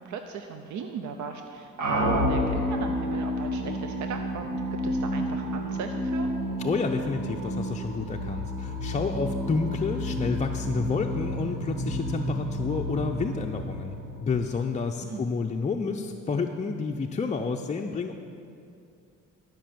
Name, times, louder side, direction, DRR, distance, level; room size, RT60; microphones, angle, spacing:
voice 1, 0.0-6.3 15.0-15.2, right 6 dB, 70° right, 5 dB, 0.7 m, -38 dB
sound 1, 1.8-14.6, equal, 90° right, 1.8 m, -30 dB
voice 2, 6.6-18.1, left 4 dB, 25° left, 2 dB, 0.5 m, -30 dB
12.5 x 5.4 x 7.6 m, 2.6 s
cardioid pair, 90°, 30 cm